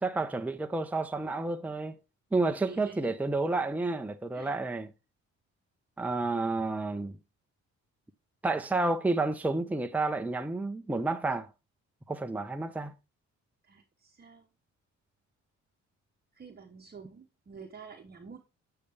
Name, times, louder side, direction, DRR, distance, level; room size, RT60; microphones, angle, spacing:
voice 1, 0.0-1.9 2.3-4.9 6.0-7.2 8.4-11.5 12.1-12.9, right 3 dB, 5° right, 0.7 m, -30 dB
voice 2, 2.5-3.2 4.3-4.5 13.6-14.5 16.3-18.4, right 5 dB, 30° right, 1.1 m, -48 dB
8.4 x 6.6 x 3.4 m
cardioid pair, 90°, 30 cm